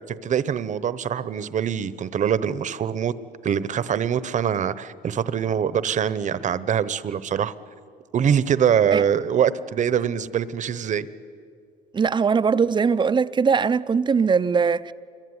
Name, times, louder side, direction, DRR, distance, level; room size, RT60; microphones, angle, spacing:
voice 1, 0.1-3.1 3.4-7.5 8.1-11.1, right 8 dB, 45° right, 1.0 m, -23 dB
voice 2, 11.9-14.9, right 5 dB, 25° right, 0.6 m, -21 dB
26.5 x 23.0 x 9.7 m
cardioid pair, 110°, 17 cm